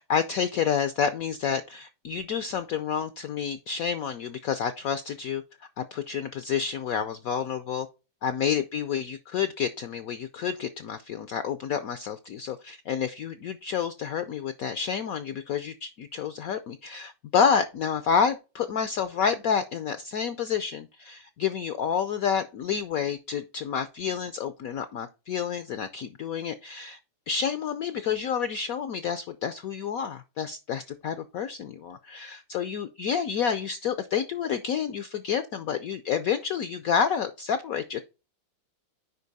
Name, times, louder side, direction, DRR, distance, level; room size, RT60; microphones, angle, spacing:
voice 1, 0.1-5.4 5.8-7.9 8.2-27.0 27.3-38.0, left 7 dB, 75° left, 0.8 m, -29 dB
8.3 x 5.2 x 4.0 m
omnidirectional pair, 2.1 m